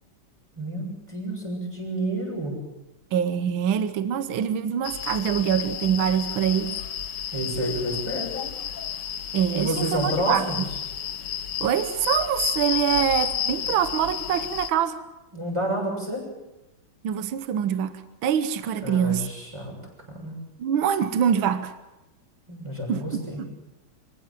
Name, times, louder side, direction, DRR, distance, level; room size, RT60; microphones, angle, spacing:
voice 1, 0.5-2.5 7.3-8.5 9.5-10.6 15.3-16.3 18.8-19.7 20.1-20.3 22.5-23.4, right 1 dB, 15° right, -1 dB, 6.7 m, -29 dB
voice 2, 3.1-6.7 9.3-10.6 11.6-15.0 17.0-19.3 20.6-21.7 22.9-23.0 23.4-23.5, right 9 dB, 75° right, 11 dB, 1.8 m, -24 dB
sound 1, 4.8-14.7, left 9 dB, 60° left, 1.6 m, -31 dB
25.5 x 16.0 x 7.4 m, 1.0 s
omnidirectional pair, 2.3 m